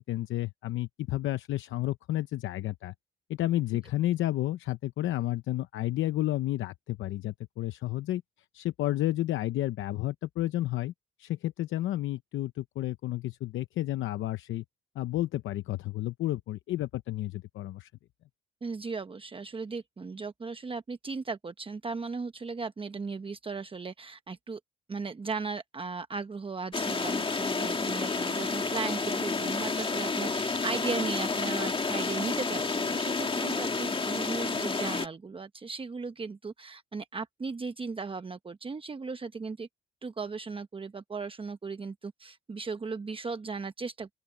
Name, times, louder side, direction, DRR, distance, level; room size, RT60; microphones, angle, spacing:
voice 1, 0.0-2.9 3.3-8.2 8.5-10.9 11.2-14.6 14.9-17.9, left 15 dB, 80° left, 0.8 m, -31 dB
voice 2, 18.6-24.6 24.9-39.7 40.0-44.1, right 4 dB, 25° right, 1.0 m, -37 dB
sound 1, 26.7-35.1, left 4 dB, 25° left, 2.0 m, -30 dB
open air
cardioid pair, 90°, 20 cm